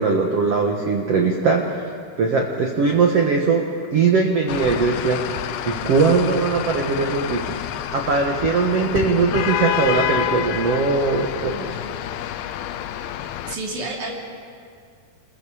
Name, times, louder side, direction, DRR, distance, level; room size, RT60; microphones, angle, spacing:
voice 1, 0.0-1.7 2.2-5.2 5.7-7.6 7.9-11.6, right 4 dB, 70° right, 1 dB, 1.4 m, -20 dB
sound 1, 4.5-13.6, left 11 dB, 80° left, 2.3 m, -28 dB
voice 2, 11.5-11.8 13.4-14.1, right 2 dB, 50° right, -2 dB, 4.2 m, -30 dB
28.0 x 22.0 x 5.0 m, 2.2 s
omnidirectional pair, 4.8 m